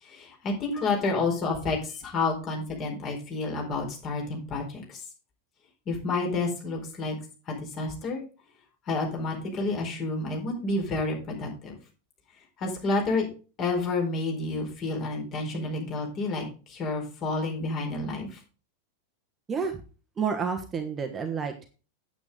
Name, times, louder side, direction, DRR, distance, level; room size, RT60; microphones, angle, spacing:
voice 1, 0.0-5.0 5.9-7.2 7.5-8.2 8.9-11.7 12.6-13.3 13.6-18.4, left 3 dB, 35° left, 1 dB, 4.5 m, -30 dB
voice 2, 19.5-19.8 20.2-21.7, right 6 dB, 20° right, 6 dB, 1.3 m, -30 dB
9.1 x 8.8 x 3.8 m, 0.34 s
figure-of-eight pair, 90°, 0 cm